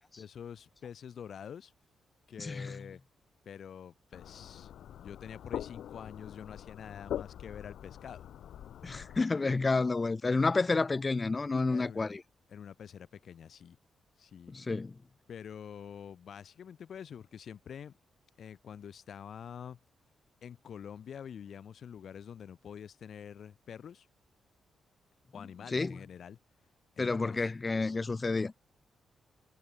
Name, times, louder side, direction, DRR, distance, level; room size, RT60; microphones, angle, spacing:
voice 1, 0.2-1.7 2.3-3.0 3.5-4.7 5.0-8.3 11.7-12.1 12.5-13.8 14.2-14.5 15.3-17.9 18.4-19.8 20.4-24.1 25.3-26.4 27.0-27.5, left 8 dB, 55° left, 3.5 m, -46 dB
voice 2, 2.4-2.8 8.8-12.2 14.5-14.9 25.7-26.0 27.0-28.5, left 3 dB, 20° left, 0.5 m, -30 dB
sound 1, 4.1-9.2, left 10 dB, 75° left, 0.8 m, -43 dB
wide cardioid pair, 160°, 0 cm